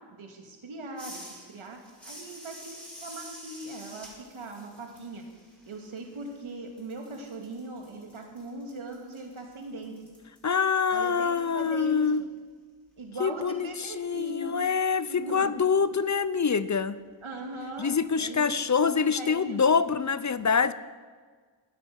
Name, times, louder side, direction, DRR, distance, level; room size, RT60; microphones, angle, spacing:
voice 1, 0.1-5.3 5.7-9.9 10.9-12.1 13.0-14.6 15.1-15.6 17.2-19.6, right 2 dB, 80° right, 2 dB, 2.4 m, -40 dB
sound 1, 1.0-6.5 6.8-11.6, equal, 5° left, 4.9 m, -48 dB
voice 2, 10.4-12.2 13.2-13.7 14.0-17.0 17.8-20.7, left 6 dB, 35° left, 15 dB, 0.6 m, -25 dB
13.5 x 9.7 x 6.4 m, 1.5 s
cardioid pair, 55°, 48 cm